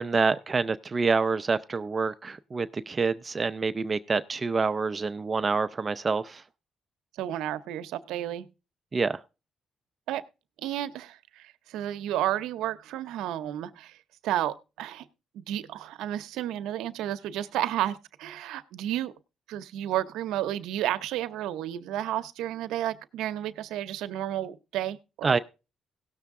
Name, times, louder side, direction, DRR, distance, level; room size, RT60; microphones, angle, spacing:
voice 1, 0.0-6.4 8.9-9.2 25.2-25.4, right 4 dB, 30° right, 12 dB, 0.5 m, -27 dB
voice 2, 7.1-8.5 10.1-10.2 10.6-14.0 14.2-15.0 15.3-19.1 19.5-25.4, right 12 dB, 90° right, 12 dB, 0.7 m, -32 dB
17.5 x 6.7 x 3.6 m, 0.30 s
cardioid pair, 90°, 0 cm